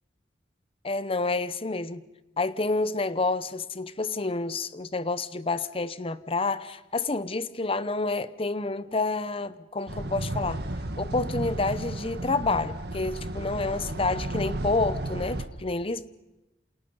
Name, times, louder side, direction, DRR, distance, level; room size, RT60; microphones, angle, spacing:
voice 1, 0.8-2.0 2.4-10.6 11.0-16.1, left 3 dB, 30° left, 0.8 m, -29 dB
sound 1, 9.9-15.5, right 1 dB, 60° right, 1.6 m, -33 dB
28.0 x 27.5 x 5.5 m
head